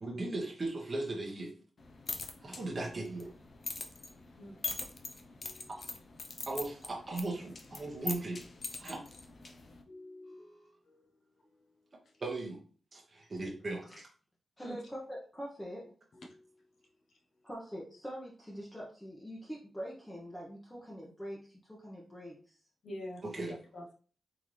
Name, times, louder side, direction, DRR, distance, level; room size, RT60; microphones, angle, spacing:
voice 1, 0.0-1.5 2.4-3.3 6.5-8.4 8.8-9.0 12.2-12.6 12.9-13.8 23.2-23.6, right 2 dB, 40° right, 0.9 m, -37 dB
sound 1, 1.8-9.8, left 3 dB, 45° left, 0.6 m, -43 dB
voice 2, 9.9-10.6 10.9-11.0 14.6-14.8 16.3-16.4 22.8-23.4 23.7-23.9, left 1 dB, 70° left, 1.0 m, -46 dB
voice 3, 14.6-15.9 17.4-22.6, equal, 10° left, 0.9 m, -44 dB
3.8 x 2.7 x 3.1 m
cardioid pair, 85°, 0 cm